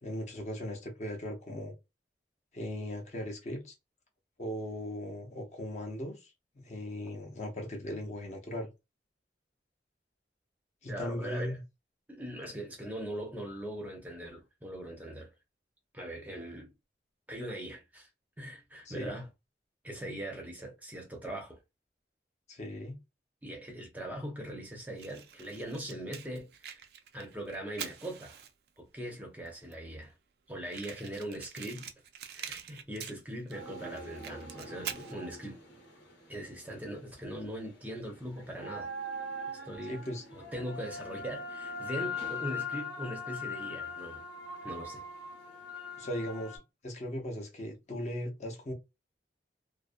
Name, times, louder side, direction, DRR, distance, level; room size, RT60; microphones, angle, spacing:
voice 1, 0.0-1.7 2.5-3.7 4.4-6.3 6.6-8.7 10.8-11.6 18.9-19.1 22.5-23.0 39.9-40.2 46.0-48.7, left 1 dB, 40° left, 0.6 m, -38 dB
voice 2, 10.9-11.6 12.1-15.3 15.9-16.7 17.3-18.1 18.4-19.3 19.8-21.6 23.4-26.9 27.1-28.4 28.8-30.1 30.5-31.9 32.3-35.6 36.3-38.9 39.6-40.0 40.3-44.2 44.6-45.0, right 1 dB, 10° right, 0.5 m, -41 dB
Fire, 25.0-28.8 29.5-29.6 29.7-29.8 30.0-30.1 30.7-33.6 33.9-35.1, right 8 dB, 60° right, 0.4 m, -44 dB
sound 1, 33.5-37.3 37.5-46.6, left 3 dB, 85° left, 1.0 m, -41 dB
2.4 x 2.0 x 2.4 m
head